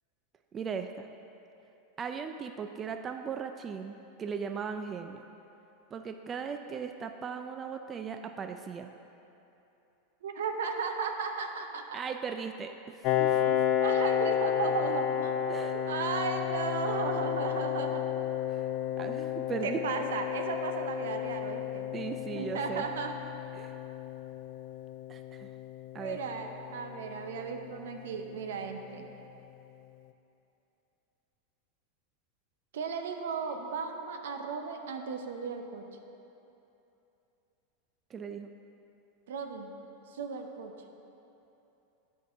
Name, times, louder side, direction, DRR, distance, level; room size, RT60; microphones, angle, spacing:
voice 1, 0.5-1.1 2.0-5.2 5.9-8.9 11.9-13.6 15.5-15.8 18.5-18.7 19.0-20.1 21.9-22.9 23.5-23.7 25.1-25.5 25.9-26.2 38.1-38.5, right 6 dB, 30° right, 7 dB, 0.3 m, -38 dB
voice 2, 10.2-12.0 13.4-13.5 13.8-15.5 15.9-18.0 19.6-21.9 22.3-23.1 26.0-29.1 32.7-35.8 39.3-39.7 40.1-40.7, right 5 dB, 75° right, 5 dB, 0.7 m, -35 dB
Piano, 13.0-28.4, left 10 dB, 50° left, 0.3 m, -32 dB
8.3 x 4.6 x 5.5 m, 2.9 s
hypercardioid pair, 105°, 0 cm